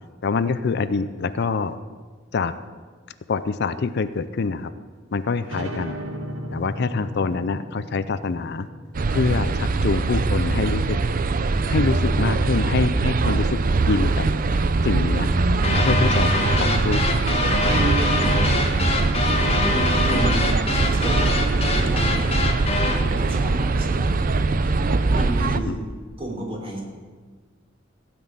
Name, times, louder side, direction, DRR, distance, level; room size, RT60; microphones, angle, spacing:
voice 1, 0.2-1.8 2.3-2.5 3.3-4.7 5.1-6.0 6.5-8.7 9.1-11.0 11.7-13.6 13.9-14.3 14.8-15.3 15.8-16.3 16.6-17.2 25.7-25.8, left 4 dB, 60° left, 13 dB, 0.5 m, -25 dB
sound 1, 5.4-10.7, right 1 dB, 85° right, 2.2 m, -36 dB
sound 2, 8.9-25.6, right 3 dB, 45° right, 0.5 m, -22 dB
sound 3, 15.6-23.1, left 3 dB, 30° left, 1.5 m, -24 dB
voice 2, 18.0-18.3 18.7-18.9 19.6-22.3 23.0-24.1 25.1-25.9 26.2-26.8, right 1 dB, 30° right, -1 dB, 3.5 m, -31 dB
16.0 x 6.1 x 8.9 m, 1.5 s
head